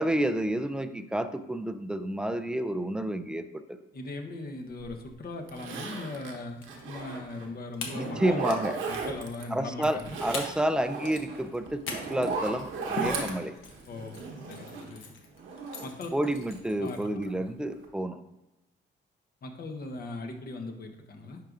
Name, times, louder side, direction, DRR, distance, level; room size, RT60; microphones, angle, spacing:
voice 1, 0.0-3.8 7.9-8.8 9.5-13.5 16.1-18.2, right 1 dB, 5° right, 9 dB, 0.4 m, -30 dB
voice 2, 3.9-8.4 8.9-10.3 13.9-15.2 15.8-16.1 16.8-17.0 17.4-17.5 19.4-21.4, left 2 dB, 50° left, 3 dB, 1.0 m, -39 dB
Zipper (clothing), 4.8-4.9 5.5-7.5 7.8-9.4 9.8-15.0 15.4-16.6 16.9-17.4 17.7-17.9, right 3 dB, 90° right, 1.2 m, -36 dB
sound 1, 6.4-6.8 7.1-7.2 7.7-8.6 8.9-9.2 10.0-10.1 10.3-10.7 10.9-17.0, left 4 dB, 90° left, 1.1 m, -41 dB
10.5 x 4.7 x 2.5 m, 0.98 s
cardioid pair, 90°, 20 cm